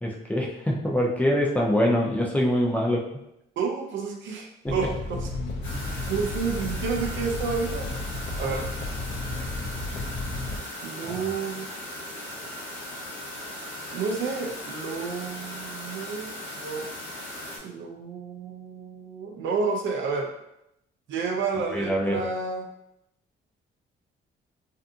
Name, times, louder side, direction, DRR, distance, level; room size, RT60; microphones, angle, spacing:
voice 1, 0.0-3.1 4.6-4.7 11.1-11.2 21.7-22.2, equal, 10° left, -2 dB, 0.4 m, -24 dB
voice 2, 3.6-5.3 6.1-7.9 8.4-8.6 10.8-11.7 13.9-16.9 17.6-20.3 21.1-22.7, right 5 dB, 75° right, 1 dB, 0.5 m, -30 dB
sound 1, 4.7-10.6, left 2 dB, 60° left, 0.5 m, -33 dB
sound 2, 5.6-17.6, left 1 dB, 75° left, 0.9 m, -38 dB
2.6 x 2.5 x 2.3 m, 0.83 s
cardioid pair, 90°, 20 cm